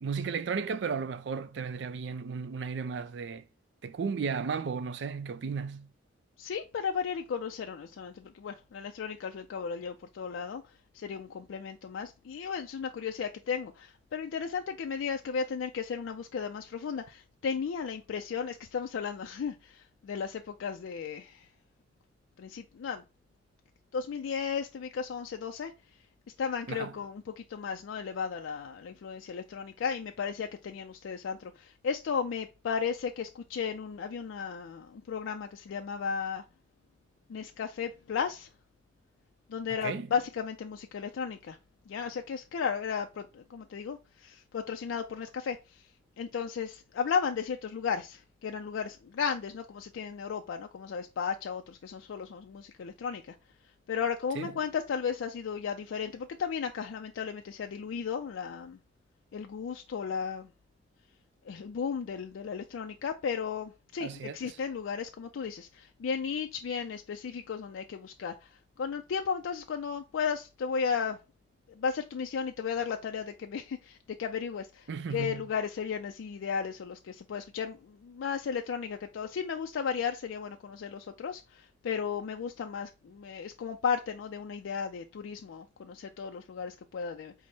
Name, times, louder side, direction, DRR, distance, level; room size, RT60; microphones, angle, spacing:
voice 1, 0.0-3.4 3.8-5.9 26.7-26.9 39.8-40.1 54.4-54.5 64.0-64.6 74.9-75.5, right 5 dB, 65° right, 0.4 m, -34 dB
voice 2, 6.4-10.6 10.9-21.5 22.4-23.0 23.9-25.7 26.4-36.4 37.3-38.5 39.5-41.6 41.9-45.8 46.2-53.3 53.9-58.8 59.3-60.5 61.5-68.5 68.8-71.2 71.7-87.3, left 6 dB, 90° left, 0.4 m, -35 dB
4.6 x 2.0 x 4.2 m
head